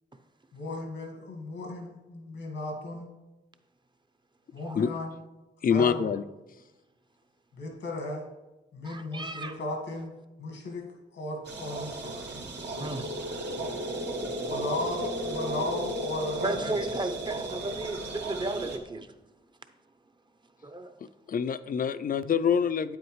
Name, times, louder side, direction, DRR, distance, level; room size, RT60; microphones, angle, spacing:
voice 1, 0.5-3.1 4.5-5.1 5.7-6.1 7.5-8.3 8.7-10.1 10.4-10.9 11.1-12.2 14.5-16.8, left 2 dB, 90° left, 1 dB, 1.6 m, -35 dB
voice 2, 5.6-6.2 21.3-23.0, left 7 dB, 50° left, 14 dB, 0.4 m, -25 dB
voice 3, 8.8-9.6 12.8-13.1 16.4-19.1 20.6-20.9, right 2 dB, 25° right, 8 dB, 0.6 m, -34 dB
sound 1, 11.4-18.8, right 1 dB, 70° right, 1.1 m, -34 dB
8.7 x 8.0 x 3.1 m, 1.1 s
cardioid pair, 65°, 19 cm